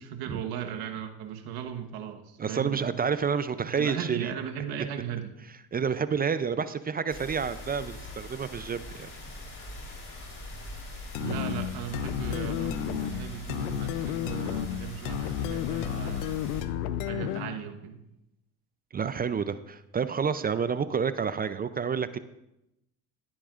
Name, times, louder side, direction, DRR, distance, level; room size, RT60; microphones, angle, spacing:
voice 1, 0.0-3.0 3.6-5.3 11.2-16.5 17.0-18.0, right 9 dB, 70° right, 5 dB, 1.3 m, -37 dB
voice 2, 2.4-4.3 5.7-9.1 18.9-22.2, right 6 dB, 25° right, 13 dB, 0.5 m, -29 dB
sound 1, 7.1-16.6, left 1 dB, 35° left, 3.7 m, -42 dB
sound 2, 11.1-17.6, left 11 dB, 90° left, 0.6 m, -32 dB
16.5 x 8.6 x 2.5 m, 0.85 s
supercardioid pair, 80°, 38 cm